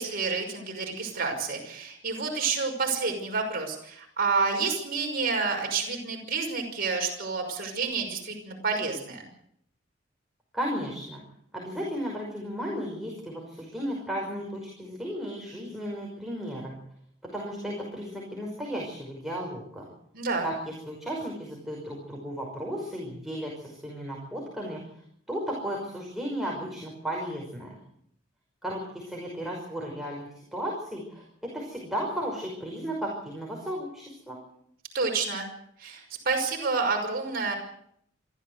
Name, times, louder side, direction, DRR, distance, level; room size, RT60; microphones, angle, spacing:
voice 1, 0.0-9.2 20.1-20.5 34.9-35.5 35.8-37.6, right 4 dB, 50° right, 2 dB, 5.7 m, -29 dB
voice 2, 10.5-11.2 11.5-16.8 17.3-19.9 20.4-24.8 25.3-27.7 28.6-31.2 31.5-34.4, equal, ahead, -3 dB, 5.6 m, -34 dB
23.5 x 15.0 x 8.2 m, 0.71 s
head